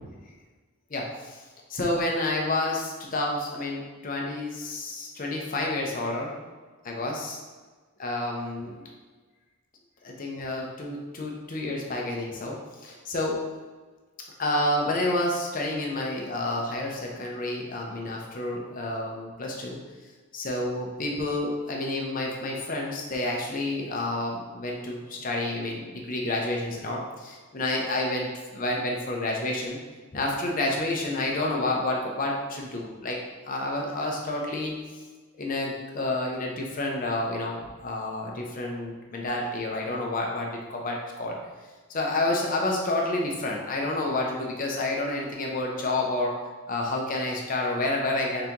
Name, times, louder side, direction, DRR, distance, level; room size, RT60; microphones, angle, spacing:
voice 1, 0.9-1.4 1.7-6.4 6.8-7.4 8.0-8.9 10.0-13.4 14.4-19.8 20.3-29.8 30.1-33.2 33.5-34.8 35.4-41.4 41.9-46.3 46.7-48.5, left 2 dB, 40° left, -1 dB, 0.6 m, -29 dB
4.0 x 2.9 x 3.6 m, 1.3 s
head